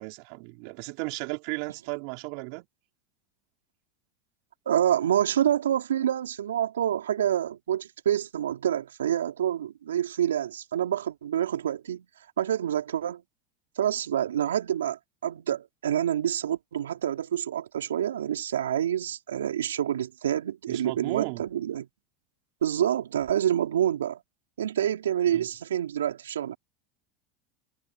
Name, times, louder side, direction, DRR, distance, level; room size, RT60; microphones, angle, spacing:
voice 1, 0.0-2.7 20.7-21.5 25.3-25.5, right 30 dB, 65° right, 4.2 m, -35 dB
voice 2, 4.7-12.1 12.4-13.2 13.8-21.9 22.6-24.2 24.6-26.6, right 10 dB, 85° right, 3.9 m, -27 dB
hypercardioid pair, 90°, 0 cm